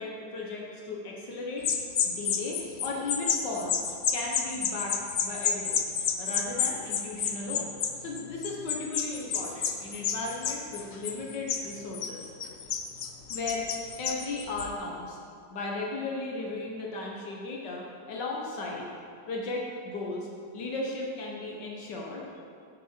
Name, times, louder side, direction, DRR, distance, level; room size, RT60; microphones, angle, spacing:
voice 1, 0.0-1.7 2.1-3.8 4.1-5.8 6.2-7.7 8.0-12.2 13.3-13.7 14.0-15.2 15.5-18.9 19.3-22.4, left 3 dB, 80° left, -2 dB, 1.8 m, -36 dB
sound 1, 1.6-14.7, left 7 dB, 60° left, 0.7 m, -30 dB
9.5 x 8.6 x 4.4 m, 2.4 s
omnidirectional pair, 1.8 m